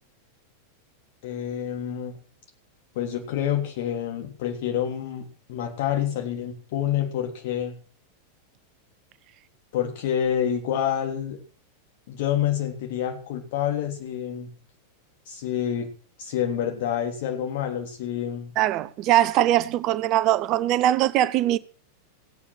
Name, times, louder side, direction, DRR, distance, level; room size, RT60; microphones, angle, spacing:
voice 1, 1.2-2.2 2.9-7.7 9.7-11.4 12.1-14.5 15.3-15.9 16.2-18.5, left 10 dB, 50° left, 3.3 m, -28 dB
voice 2, 18.6-21.6, right 13 dB, 40° right, 0.7 m, -21 dB
16.5 x 8.7 x 6.2 m
figure-of-eight pair, 90°, 0 cm